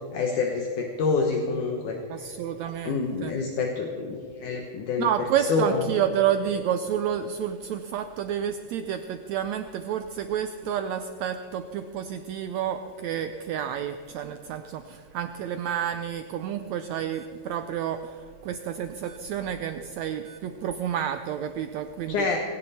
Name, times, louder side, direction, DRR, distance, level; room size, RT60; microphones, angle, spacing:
voice 1, 0.1-2.0 2.8-5.1 5.5-5.8 22.1-22.4, left 4 dB, 70° left, 2 dB, 2.5 m, -27 dB
voice 2, 2.1-3.3 5.0-22.4, right 9 dB, 90° right, 8 dB, 1.5 m, -30 dB
19.5 x 16.5 x 4.2 m, 2.3 s
omnidirectional pair, 3.9 m